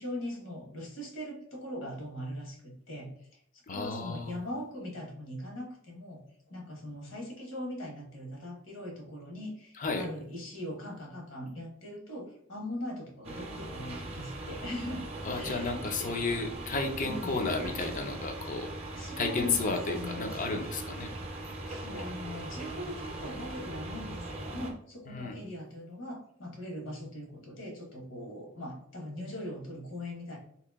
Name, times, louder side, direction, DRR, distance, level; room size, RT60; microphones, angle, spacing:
voice 1, 0.0-3.4 3.7-16.2 16.5-16.6 17.0-17.4 18.4-18.5 18.9-20.5 21.6-30.4, left 1 dB, 65° left, 0 dB, 1.1 m, -41 dB
voice 2, 3.7-4.4 9.8-10.1 15.2-18.7 19.2-21.1 25.1-25.4, left 3 dB, 40° left, 4 dB, 0.5 m, -32 dB
sound 1, 13.2-24.7, right 2 dB, 30° right, 0.6 m, -40 dB
2.9 x 2.7 x 3.4 m, 0.66 s
head